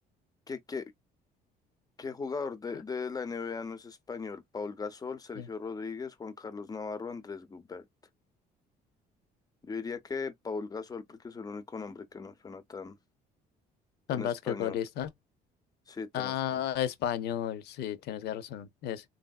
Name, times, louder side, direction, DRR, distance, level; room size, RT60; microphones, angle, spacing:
voice 1, 0.5-0.8 2.0-7.9 9.6-13.0 14.1-14.8 15.9-16.6, left 4 dB, 20° left, 0.7 m, -38 dB
voice 2, 14.1-15.1 16.1-19.0, left 10 dB, 75° left, 0.7 m, -33 dB
3.2 x 2.6 x 2.3 m
cardioid pair, 110°, 17 cm